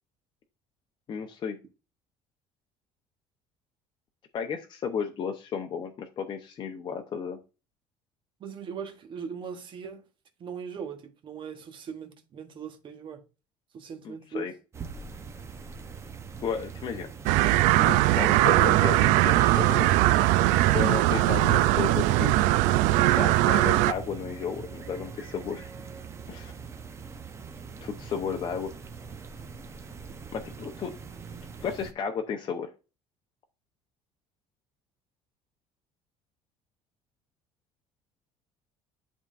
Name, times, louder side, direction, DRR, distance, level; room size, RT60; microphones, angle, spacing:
voice 1, 1.1-1.6 4.3-7.4 14.0-14.5 16.4-17.1 17.8-19.9 20.7-22.4 23.0-25.7 26.3-26.5 27.8-28.7 30.3-30.9 31.6-32.7, left 6 dB, 40° left, 0.8 m, -33 dB
voice 2, 8.4-10.0 10.4-13.2 13.7-14.5, right 6 dB, 45° right, 1.2 m, -39 dB
sound 1, 14.7-31.9, right 5 dB, 20° right, 0.7 m, -42 dB
sound 2, 17.3-23.9, right 16 dB, 80° right, 0.4 m, -21 dB
10.5 x 3.6 x 2.5 m
cardioid pair, 125°, 12 cm